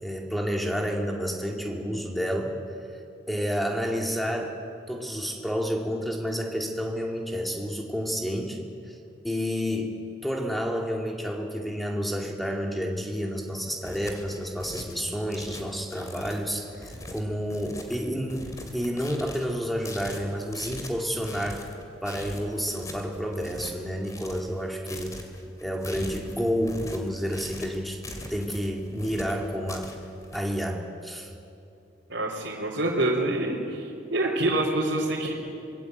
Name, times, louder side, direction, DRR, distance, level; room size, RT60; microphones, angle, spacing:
voice 1, 0.0-2.6 3.3-4.6 4.9-9.0 9.2-9.9 10.2-21.7 22.0-25.2 25.6-28.0 28.3-29.9 30.3-31.3, equal, ahead, 0 dB, 2.4 m, -30 dB
sound 1, 13.6-30.4, left 1 dB, 20° left, 2.5 m, -41 dB
voice 2, 32.1-35.3, right 1 dB, 75° right, -6 dB, 3.6 m, -26 dB
25.5 x 21.5 x 8.0 m, 2.6 s
head